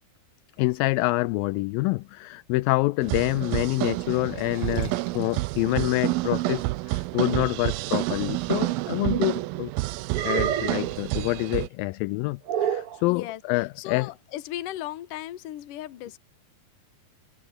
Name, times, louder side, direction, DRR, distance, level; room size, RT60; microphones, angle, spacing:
voice 1, 0.6-9.7 10.2-14.1, left 22 dB, 85° left, 2.1 m, -27 dB
sound 1, 2.9-8.1, right 5 dB, 35° right, 4.1 m, -46 dB
sound 2, 3.0-11.7, right 20 dB, 80° right, 2.2 m, -29 dB
sound 3, 8.6-9.4 10.1-11.0 12.5-13.0, right 9 dB, 55° right, 1.6 m, -28 dB
voice 2, 13.1-13.4 13.8-16.2, left 13 dB, 65° left, 2.9 m, -36 dB
omnidirectional pair, 4.5 m